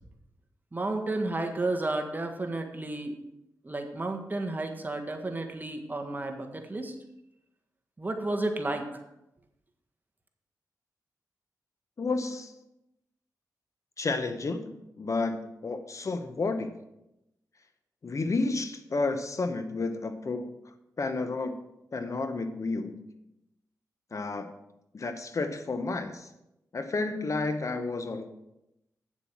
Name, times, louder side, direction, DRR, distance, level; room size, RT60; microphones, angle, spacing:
voice 1, 0.7-3.1 3.6-6.9 8.0-9.0, right 2 dB, 25° right, 4 dB, 1.5 m, -32 dB
voice 2, 12.0-12.5 14.0-16.8 18.0-20.6 21.0-21.6 21.9-23.1 24.1-24.5 24.9-26.3 26.7-28.3, left 3 dB, 50° left, 9 dB, 0.9 m, -31 dB
9.0 x 7.1 x 6.0 m, 0.87 s
cardioid pair, 70°, 7 cm